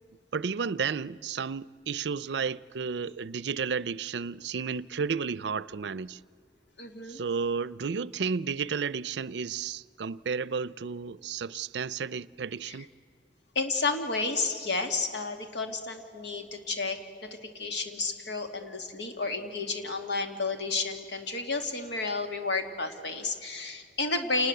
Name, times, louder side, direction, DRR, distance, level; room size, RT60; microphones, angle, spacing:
voice 1, 0.3-6.2 7.1-12.9, right 5 dB, 75° right, 0.5 m, -32 dB
voice 2, 6.8-7.2 12.7-12.8 13.5-24.5, left 3 dB, 80° left, 2.5 m, -31 dB
28.0 x 20.0 x 8.0 m
head